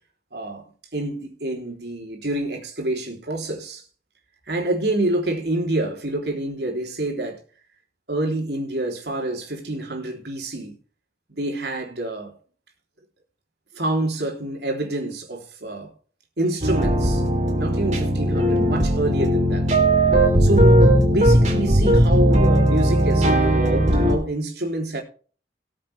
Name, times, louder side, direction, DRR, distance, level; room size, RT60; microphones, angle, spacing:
voice 1, 0.3-0.7 0.9-3.8 4.5-7.4 8.1-10.7 11.3-12.3 13.7-15.9 16.4-17.2 17.5-19.7 20.0-20.1 20.4-25.0, right 1 dB, 70° right, 3.5 m, -27 dB
sound 1, 16.6-24.2, right 1 dB, 40° right, 3.2 m, -18 dB
18.5 x 7.5 x 3.4 m
head